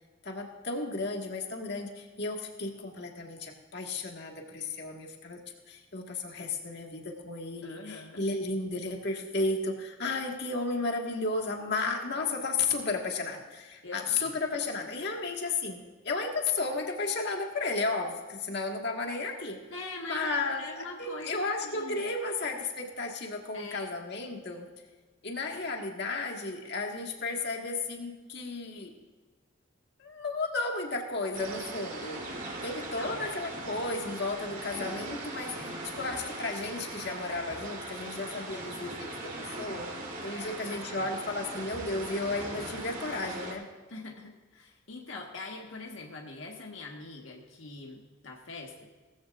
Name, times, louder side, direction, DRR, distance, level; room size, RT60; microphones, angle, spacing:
voice 1, 0.2-5.4 5.7-19.6 20.0-24.7 25.2-28.9 30.0-32.3 32.6-35.6 36.0-39.9 40.2-43.7, left 3 dB, 55° left, 1 dB, 1.8 m, -33 dB
voice 2, 7.6-8.2 13.8-14.3 19.7-22.1 23.5-23.9 33.0-33.3 40.3-41.1 43.9-48.9, left 3 dB, 75° left, 0 dB, 1.5 m, -43 dB
sound 1, 31.3-43.5, right 2 dB, 45° right, 3.2 m, -40 dB
18.5 x 14.5 x 2.5 m, 1.4 s
head